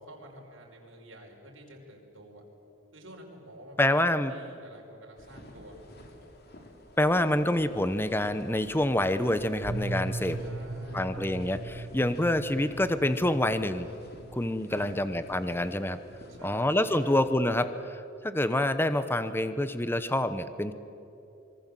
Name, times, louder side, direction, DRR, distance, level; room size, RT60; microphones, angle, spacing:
voice 1, 0.0-2.4 2.9-3.8 4.1-5.8 10.4-11.2 14.7-15.1 16.3-17.2, equal, 75° right, 0 dB, 5.4 m, -49 dB
voice 2, 3.8-4.4 7.0-10.4 10.9-13.9 14.3-16.0 16.4-20.7, left 1 dB, 10° left, 11 dB, 0.9 m, -27 dB
sound 1, 5.2-17.6, left 1 dB, 55° left, 3.4 m, -50 dB
sound 2, 9.6-17.7, right 2 dB, 45° right, 0.6 m, -40 dB
26.0 x 23.5 x 7.7 m, 2.9 s
head